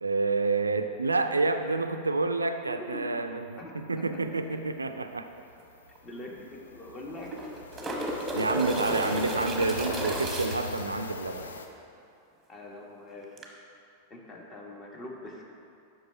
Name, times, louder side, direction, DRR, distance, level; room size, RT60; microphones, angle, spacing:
voice 1, 0.0-5.3 8.3-11.5, right 3 dB, 80° right, 8 dB, 0.3 m, -28 dB
voice 2, 2.7-3.1 3.6-4.6 6.0-7.3 12.5-13.3 14.1-15.4, left 2 dB, 25° left, -1 dB, 1.3 m, -43 dB
sound 1, 3.3-3.4 3.6-3.8 4.1-11.7, left 3 dB, 70° left, 0.5 m, -42 dB
sound 2, 5.6-5.7 6.0-6.1 7.1-10.8 13.4-13.5, right 1 dB, 15° right, 1.0 m, -33 dB
7.8 x 5.9 x 4.3 m, 2.6 s
figure-of-eight pair, 90°, 0 cm